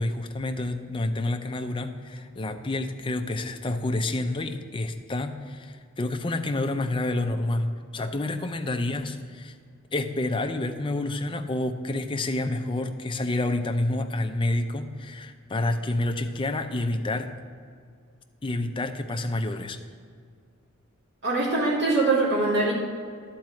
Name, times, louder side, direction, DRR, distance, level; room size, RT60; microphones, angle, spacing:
voice 1, 0.0-9.5 9.9-17.3 18.4-19.8, left 2 dB, 25° left, 6 dB, 0.5 m, -29 dB
voice 2, 21.2-22.7, right 2 dB, 55° right, -5 dB, 2.7 m, -23 dB
10.5 x 4.6 x 7.6 m, 2.1 s
head